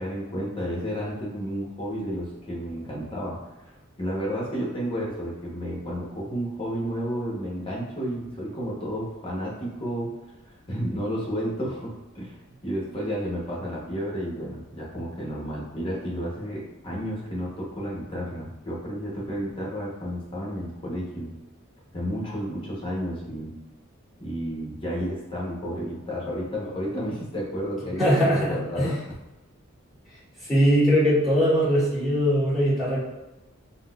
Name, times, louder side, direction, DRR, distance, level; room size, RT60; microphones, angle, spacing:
voice 1, 0.0-3.4 4.0-10.1 10.5-12.4 12.6-21.3 21.9-23.5 24.2-29.0, equal, 25° left, -5 dB, 0.8 m, -31 dB
voice 2, 28.0-29.0 30.5-33.0, equal, ahead, -12 dB, 1.5 m, -21 dB
3.9 x 2.0 x 2.3 m, 1.0 s
head